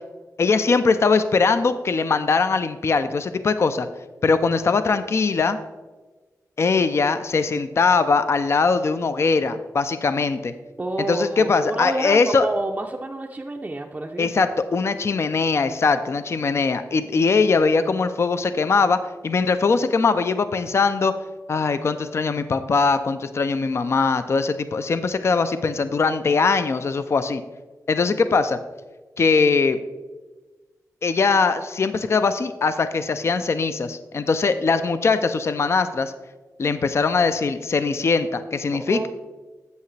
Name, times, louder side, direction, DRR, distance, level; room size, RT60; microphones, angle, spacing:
voice 1, 0.4-3.9 4.2-5.6 6.6-10.5 11.1-12.5 14.2-21.1 21.5-27.4 27.9-28.6 29.2-29.8 31.0-36.1 36.6-39.1, left 4 dB, 45° left, 11 dB, 0.4 m, -21 dB
voice 2, 10.8-14.3 38.9-39.1, right 2 dB, 25° right, 0 dB, 0.5 m, -28 dB
8.1 x 8.0 x 3.2 m, 1.2 s
wide cardioid pair, 105°, 6 cm